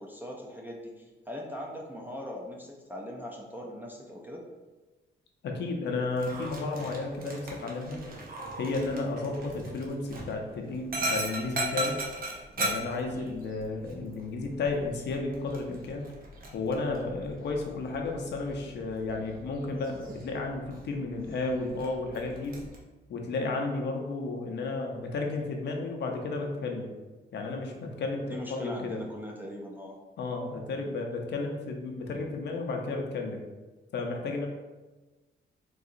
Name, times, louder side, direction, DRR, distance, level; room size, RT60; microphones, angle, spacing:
voice 1, 0.0-4.4 28.3-29.9, equal, 10° right, -2 dB, 0.3 m, -40 dB
voice 2, 5.4-8.0 8.6-12.0 12.6-16.0 16.5-22.6 23.1-26.9 27.3-29.0 30.2-33.4 33.9-34.5, left 3 dB, 60° left, 2 dB, 0.5 m, -33 dB
Dog, 6.1-22.8, right 1 dB, 45° right, 0.7 m, -39 dB
3.8 x 2.8 x 2.5 m, 1.2 s
wide cardioid pair, 165°, 21 cm